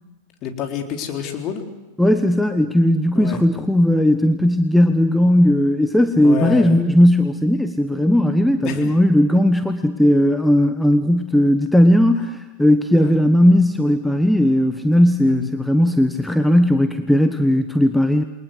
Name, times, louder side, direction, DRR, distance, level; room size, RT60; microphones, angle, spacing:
voice 1, 0.4-1.6 3.1-3.4 6.2-6.8 8.6-9.0 13.0-13.2 15.3-15.6, left 7 dB, 35° left, 5 dB, 3.9 m, -28 dB
voice 2, 2.0-18.2, left 1 dB, ahead, 8 dB, 1.3 m, -16 dB
28.5 x 23.0 x 8.1 m, 1.1 s
figure-of-eight pair, 90°, 0 cm